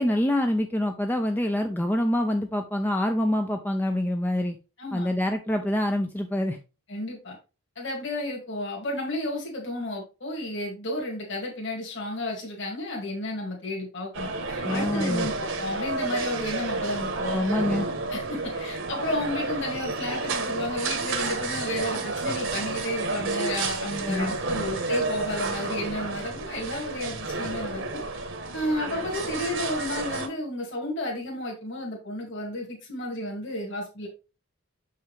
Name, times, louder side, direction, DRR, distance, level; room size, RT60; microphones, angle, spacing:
voice 1, 0.0-4.6 4.9-6.6 14.6-15.3 17.3-17.9 24.1-24.3, left 1 dB, 10° left, 5 dB, 0.4 m, -26 dB
voice 2, 4.8-5.1 6.9-7.4 7.8-17.4 18.1-28.0 28.5-34.1, left 1 dB, 55° left, -2 dB, 2.3 m, -32 dB
sound 1, 14.1-30.3, right 3 dB, 55° right, 1.2 m, -30 dB
7.2 x 5.6 x 3.4 m, 0.30 s
head